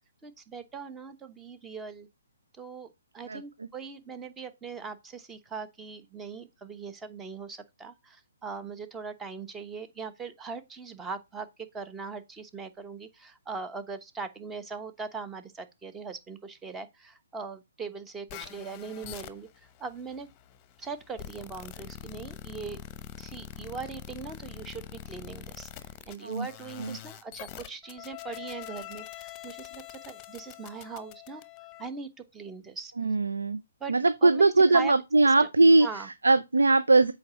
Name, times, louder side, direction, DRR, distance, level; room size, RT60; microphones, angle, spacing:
voice 1, 0.2-2.1 2.6-2.9 3.1-11.5 11.7-20.3 20.8-22.8 23.2-31.4 31.8-32.9 33.8-33.9 34.2-35.0 35.2-35.5 35.8-36.1, right 5 dB, 10° right, 1.0 m, -40 dB
sound 1, 18.3-31.9, left 12 dB, 25° left, 0.9 m, -44 dB
voice 2, 33.0-33.6 33.9-35.9 36.2-37.1, right 3 dB, 85° right, 0.6 m, -21 dB
7.7 x 4.7 x 4.1 m
hypercardioid pair, 140°, 0 cm